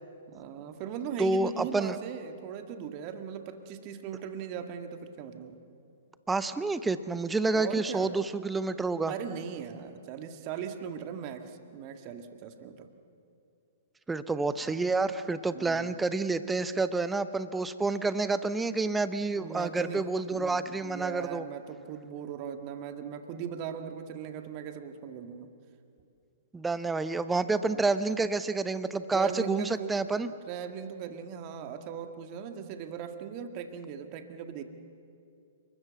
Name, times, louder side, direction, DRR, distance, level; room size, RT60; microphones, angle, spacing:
voice 1, 0.3-5.6 7.5-8.2 9.1-12.9 15.5-15.9 19.3-25.5 27.7-27.8 29.1-30.0 30.5-34.6, right 8 dB, 35° right, 6 dB, 2.0 m, -39 dB
voice 2, 1.2-2.0 6.3-9.1 14.1-21.4 26.5-30.3, right 3 dB, 10° right, 13 dB, 0.9 m, -29 dB
29.5 x 21.0 x 8.2 m, 2.6 s
figure-of-eight pair, 115°, 0 cm